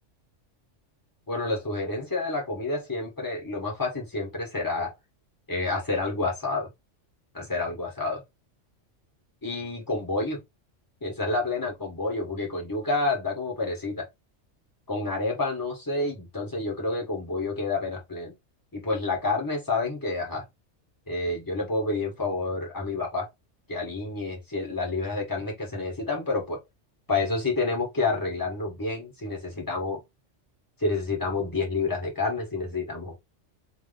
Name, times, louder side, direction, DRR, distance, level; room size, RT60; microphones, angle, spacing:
voice 1, 1.3-4.9 5.5-6.7 7.3-8.2 9.4-10.4 11.0-14.0 14.9-18.3 18.7-20.4 21.1-23.3 23.7-26.6 27.1-30.0 30.8-33.2, left 3 dB, 15° left, 1.5 m, -29 dB
3.2 x 2.5 x 3.5 m
omnidirectional pair, 1.3 m